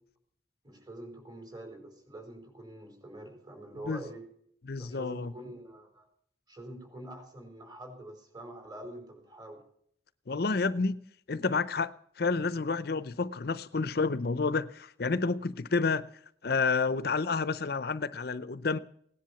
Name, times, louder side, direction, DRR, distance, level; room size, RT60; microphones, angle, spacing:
voice 1, 0.6-4.3 4.8-6.0 6.5-9.6, right 1 dB, 25° right, 4.9 m, -46 dB
voice 2, 4.7-5.3 10.3-11.0 11.3-16.1 16.4-18.8, left 4 dB, 60° left, 0.6 m, -30 dB
17.5 x 10.5 x 7.0 m
head